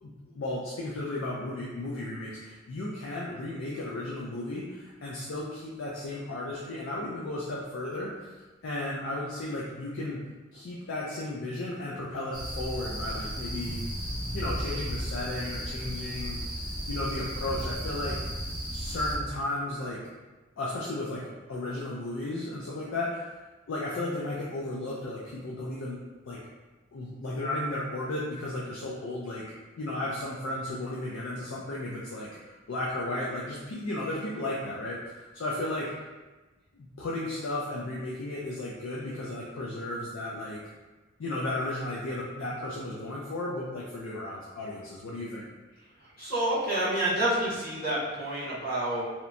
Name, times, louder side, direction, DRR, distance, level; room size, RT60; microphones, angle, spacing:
voice 1, 0.0-8.1 8.6-10.2 10.5-13.8 14.3-16.4 16.9-18.2 18.7-20.0 20.6-23.3 23.7-26.4 26.9-29.4 29.8-35.9 36.7-40.6 41.2-45.4, left 1 dB, 60° left, -5 dB, 0.4 m, -34 dB
sound 1, 12.3-19.2, equal, 20° right, 0.4 m, -34 dB
voice 2, 46.0-49.0, right 1 dB, 45° left, -9 dB, 1.0 m, -28 dB
2.8 x 2.1 x 2.5 m, 1.2 s
head